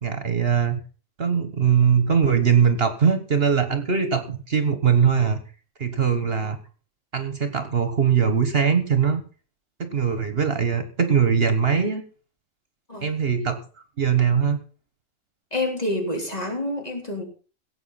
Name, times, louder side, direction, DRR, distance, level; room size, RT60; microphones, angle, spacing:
voice 1, 0.0-0.8 1.2-5.4 5.8-6.6 7.1-9.2 9.8-12.0 13.0-13.6 14.0-14.6, right 7 dB, 50° right, 9 dB, 1.5 m, -21 dB
voice 2, 6.2-6.5 12.9-13.1 15.5-17.2, left 1 dB, 30° left, 2 dB, 3.8 m, -28 dB
16.5 x 8.4 x 5.8 m, 0.38 s
omnidirectional pair, 1.3 m